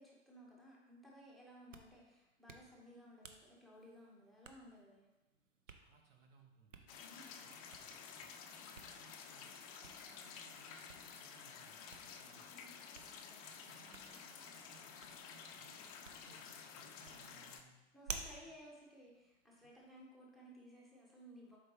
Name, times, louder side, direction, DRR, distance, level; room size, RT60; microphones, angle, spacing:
voice 1, 0.0-5.1 7.0-7.5 12.2-12.8 17.1-17.2 17.9-21.6, equal, ahead, -4 dB, 1.0 m, -59 dB
Hands, 1.5-20.0, right 5 dB, 80° right, 0.7 m, -56 dB
voice 2, 5.7-7.0 7.4-12.4 12.9-17.8 18.2-18.3, right 5 dB, 50° right, 2 dB, 1.0 m, -66 dB
sound 1, 6.9-17.6, left 6 dB, 30° left, 0.5 m, -52 dB
7.4 x 4.6 x 3.1 m, 1.0 s
figure-of-eight pair, 100°, 38 cm